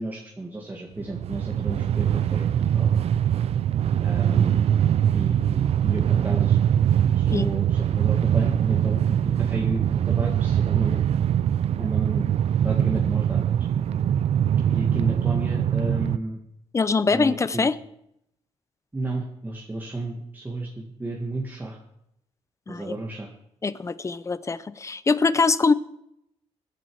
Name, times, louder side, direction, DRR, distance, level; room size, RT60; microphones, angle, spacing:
voice 1, 0.0-2.9 4.0-4.6 5.1-6.6 7.2-11.0 11.8-13.5 14.7-16.4 17.0-17.7 18.9-21.8 22.7-23.3, right 2 dB, 15° right, -1 dB, 1.9 m, -33 dB
Train, 1.0-16.2, right 9 dB, 65° right, 0.5 m, -22 dB
voice 2, 16.7-17.7 22.7-22.9 23.6-25.7, left 4 dB, 25° left, 16 dB, 0.7 m, -23 dB
20.5 x 10.5 x 4.8 m, 0.78 s
cardioid pair, 105°, 11 cm